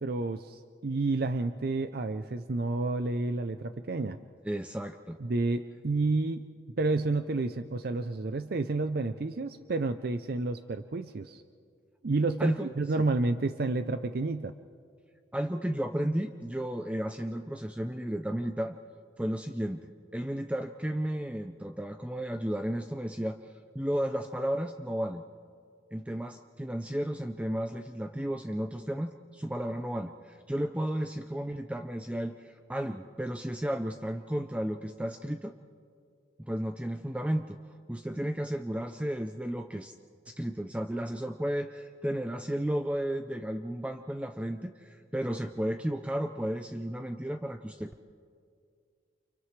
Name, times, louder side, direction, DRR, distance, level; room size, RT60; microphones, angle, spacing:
voice 1, 0.0-4.2 5.2-6.5 6.8-11.4 12.0-14.5, right 3 dB, 55° right, 10 dB, 0.5 m, -30 dB
voice 2, 4.4-5.2 12.4-12.7 15.3-18.8 19.2-25.2 25.9-35.5 36.5-37.6 37.9-39.9 40.3-47.9, equal, 5° right, 6 dB, 0.5 m, -33 dB
30.0 x 28.5 x 3.3 m, 2.3 s
head